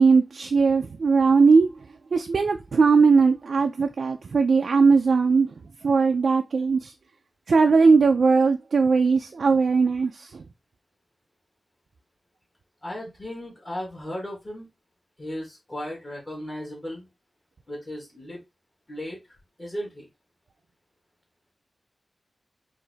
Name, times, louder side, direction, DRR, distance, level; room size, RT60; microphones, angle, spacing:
voice 1, 0.0-1.7 2.1-5.5 5.8-6.9 7.5-10.4, right 4 dB, 75° right, 0.4 m, -19 dB
voice 2, 12.8-14.7 15.2-17.1 17.7-18.4 18.9-20.1, equal, 30° left, 1.5 m, -36 dB
4.7 x 2.6 x 3.3 m
wide cardioid pair, 125°, 0 cm